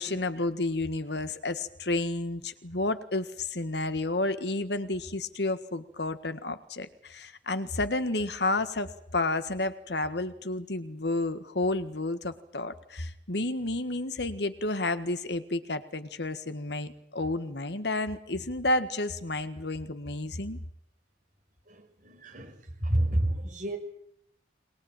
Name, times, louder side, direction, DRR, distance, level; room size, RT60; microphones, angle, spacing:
voice 1, 0.0-20.6, left 2 dB, 70° left, 10 dB, 1.6 m, -31 dB
voice 2, 21.7-23.8, right 1 dB, 50° right, 2 dB, 6.5 m, -30 dB
23.0 x 20.0 x 8.9 m, 0.74 s
head